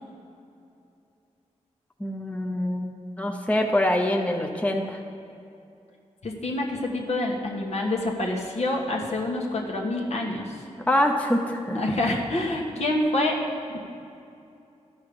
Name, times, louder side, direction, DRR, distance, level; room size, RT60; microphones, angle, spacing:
voice 1, 2.0-2.9 3.2-5.0 10.9-11.8, left 1 dB, 10° left, 3 dB, 0.7 m, -24 dB
voice 2, 6.2-10.6 11.7-13.4 13.7-13.8, left 1 dB, 65° left, 0 dB, 1.4 m, -27 dB
13.0 x 5.5 x 5.1 m, 2.6 s
cardioid pair, 75°, 12 cm